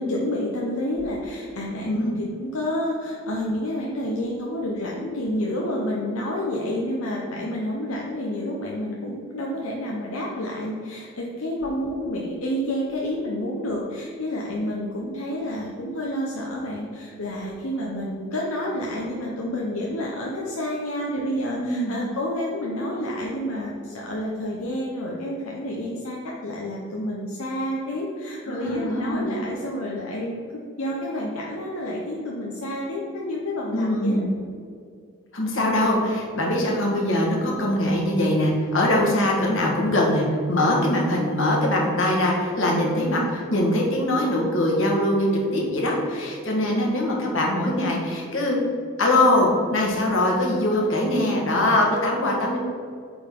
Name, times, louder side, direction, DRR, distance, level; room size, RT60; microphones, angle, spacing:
voice 1, 0.0-34.2, left 1 dB, 80° left, -3 dB, 0.9 m, -29 dB
voice 2, 1.8-2.2 21.6-21.9 28.5-29.3 33.7-34.2 35.3-48.6 49.0-52.6, left 1 dB, 65° left, -2 dB, 1.5 m, -22 dB
8.8 x 3.9 x 3.8 m, 2.3 s
head